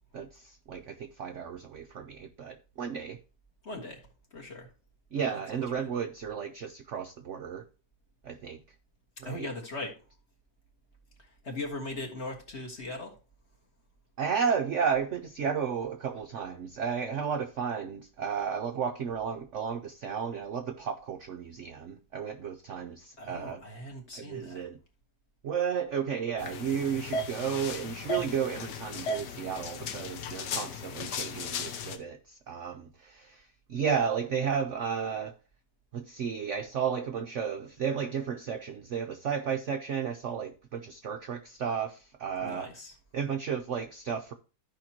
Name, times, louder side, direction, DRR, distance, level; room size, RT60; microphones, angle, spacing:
voice 1, 0.1-3.2 5.1-7.6 8.2-8.6 9.2-9.5 14.2-23.6 24.1-24.8 25.4-35.3 35.9-42.7 43.1-44.3, right 7 dB, 65° right, 6 dB, 0.7 m, -33 dB
voice 2, 3.6-4.0 4.3-4.7 5.2-6.0 9.3-10.0 11.4-13.2 23.2-24.6 28.2-28.4 42.4-43.0, left 2 dB, 35° left, 0 dB, 1.8 m, -40 dB
sound 1, 26.4-32.0, left 3 dB, 70° left, 1.4 m, -36 dB
14.5 x 5.1 x 2.9 m, 0.33 s
omnidirectional pair, 2.0 m